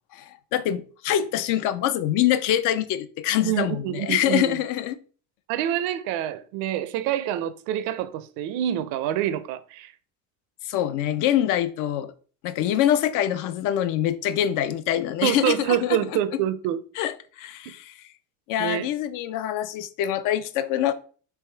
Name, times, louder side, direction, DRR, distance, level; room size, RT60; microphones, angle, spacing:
voice 1, 0.1-5.0 10.7-12.1 12.4-16.0 17.0-17.9 18.5-20.9, left 11 dB, 65° left, 0.6 m, -25 dB
voice 2, 3.4-4.6 5.5-9.9 15.2-16.8 18.6-18.9, right 11 dB, 80° right, 0.6 m, -26 dB
3.5 x 3.0 x 4.5 m
cardioid pair, 130°, 34 cm